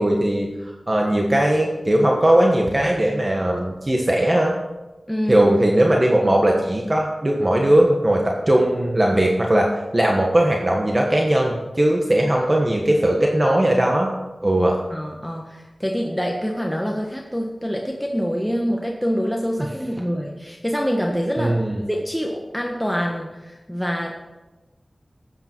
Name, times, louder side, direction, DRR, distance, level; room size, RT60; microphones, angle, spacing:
voice 1, 0.0-4.5 5.3-14.1 14.4-14.8 21.4-21.8, right 1 dB, 30° right, 0 dB, 1.4 m, -19 dB
voice 2, 5.1-5.5 14.9-21.6 21.9-24.2, equal, 5° left, 0 dB, 1.3 m, -25 dB
13.5 x 8.9 x 4.5 m, 1.1 s
wide cardioid pair, 70°, 0 cm